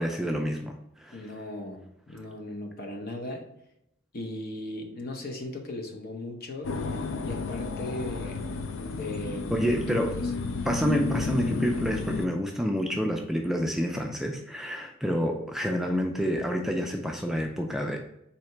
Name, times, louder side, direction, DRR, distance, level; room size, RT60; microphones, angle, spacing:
voice 1, 0.0-1.2 9.5-10.2 10.6-18.0, equal, ahead, 2 dB, 0.3 m, -28 dB
voice 2, 1.1-3.4 4.1-6.7 7.2-8.4 8.8-9.8, left 1 dB, 50° left, 3 dB, 0.8 m, -37 dB
sound 1, 6.6-12.3, left 4 dB, 65° left, 0.4 m, -32 dB
4.2 x 2.8 x 4.4 m, 0.82 s
head